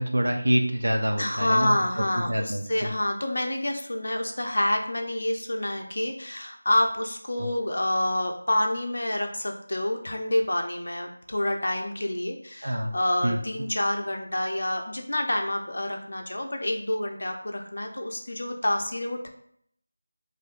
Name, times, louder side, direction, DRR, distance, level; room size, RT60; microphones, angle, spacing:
voice 1, 0.0-1.7 2.2-2.9 12.6-13.0 13.2-13.4, equal, 75° right, 2 dB, 0.8 m, -26 dB
voice 2, 1.2-19.3, left 1 dB, 60° left, 3 dB, 0.6 m, -28 dB
5.6 x 2.6 x 2.5 m, 0.68 s
figure-of-eight pair, 170°, 0 cm